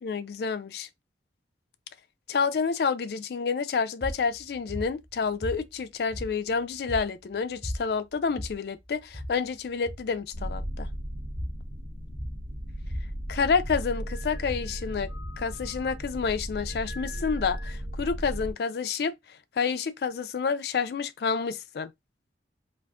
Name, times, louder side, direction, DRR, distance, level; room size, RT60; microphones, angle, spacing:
voice 1, 0.0-0.9 2.3-10.9 13.3-15.1 15.4-19.2 19.6-21.9, left 5 dB, 60° left, 0.3 m, -29 dB
sound 1, 4.0-16.0, equal, 10° right, 0.5 m, -40 dB
sound 2, 10.3-18.5, equal, 80° right, 0.9 m, -36 dB
2.5 x 2.3 x 3.5 m
head